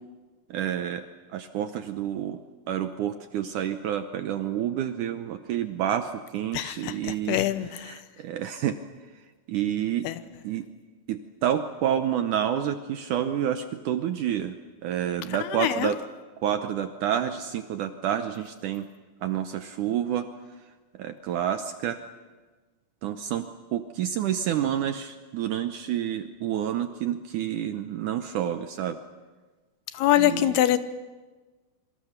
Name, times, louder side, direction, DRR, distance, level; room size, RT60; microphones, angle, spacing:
voice 1, 0.5-2.4 2.7-8.8 9.5-10.1 10.4-10.7 11.1-14.6 14.8-16.0 16.4-18.9 19.2-20.3 21.0-22.0 23.0-29.0 30.2-30.6, right 10 dB, 75° right, 8 dB, 1.9 m, -29 dB
voice 2, 7.3-7.7 10.0-10.1 15.6-15.9 30.0-30.8, left 13 dB, 85° left, 12 dB, 3.0 m, -22 dB
27.0 x 24.5 x 6.7 m, 1.3 s
omnidirectional pair, 4.5 m